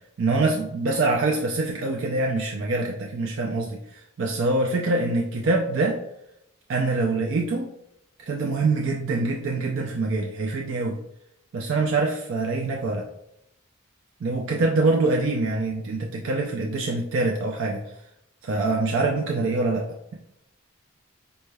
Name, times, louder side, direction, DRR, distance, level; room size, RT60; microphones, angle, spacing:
voice 1, 0.2-6.0 6.7-7.7 8.3-11.0 11.5-13.1 14.2-17.8 18.4-20.2, right 3 dB, 60° right, 1 dB, 0.4 m, -25 dB
5.2 x 3.2 x 2.2 m, 0.80 s
head